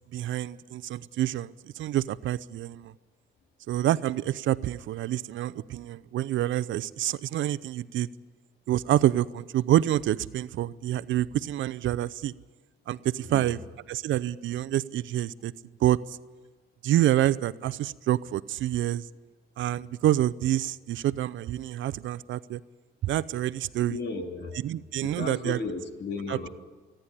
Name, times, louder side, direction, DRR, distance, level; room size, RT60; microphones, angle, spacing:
voice 1, 0.1-2.9 3.7-8.1 8.7-12.3 12.9-13.6 13.9-15.5 15.8-16.0 16.8-19.1 19.6-22.6 23.0-24.0 24.6-25.6 26.3-26.4, right 13 dB, 75° right, 17 dB, 0.6 m, -27 dB
voice 2, 23.8-24.6 25.0-26.5, left 3 dB, 60° left, 4 dB, 2.9 m, -35 dB
28.0 x 10.5 x 9.8 m, 1.3 s
cardioid pair, 90°, 20 cm